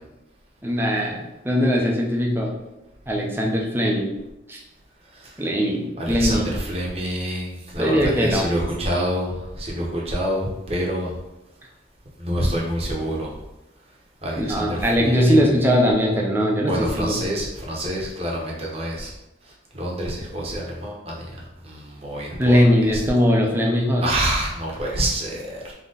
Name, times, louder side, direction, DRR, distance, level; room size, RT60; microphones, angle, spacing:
voice 1, 0.6-2.5 3.1-4.2 4.5-4.6 5.4-6.5 7.8-8.5 14.4-17.2 22.4-24.0, equal, 10° right, -1 dB, 0.6 m, -20 dB
voice 2, 6.0-11.2 12.2-13.3 14.2-15.4 16.7-19.1 19.7-21.3 21.6-22.6 22.9-23.0 24.0-25.7, right 1 dB, 30° right, -3 dB, 1.0 m, -27 dB
3.8 x 3.0 x 3.9 m, 0.95 s
head